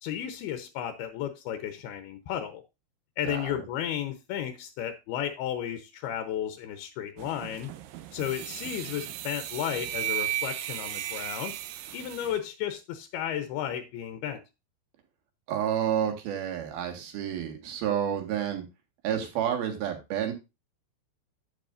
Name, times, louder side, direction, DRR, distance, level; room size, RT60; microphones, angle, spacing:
voice 1, 0.0-2.6 3.2-7.7 8.1-11.5 11.9-14.4, left 10 dB, 75° left, 2.5 m, -33 dB
voice 2, 3.2-3.6 15.5-18.7 19.0-20.3, right 9 dB, 65° right, 3.4 m, -30 dB
sound 1, 7.2-12.4, right 13 dB, 90° right, 1.9 m, -35 dB
10.5 x 9.2 x 2.5 m
omnidirectional pair, 5.1 m